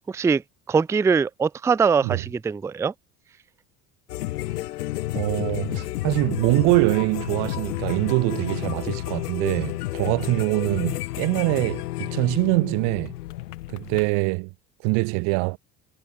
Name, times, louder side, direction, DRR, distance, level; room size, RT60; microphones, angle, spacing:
voice 1, 0.1-0.4 0.7-2.9, right 5 dB, 5° right, 0.4 m, -22 dB
sound 1, 4.1-14.1, left 16 dB, 75° left, 1.1 m, -31 dB
voice 2, 5.1-13.1 13.7-14.5 14.8-15.6, right 31 dB, 60° right, 2.2 m, -24 dB
hypercardioid pair, 65°, 46 cm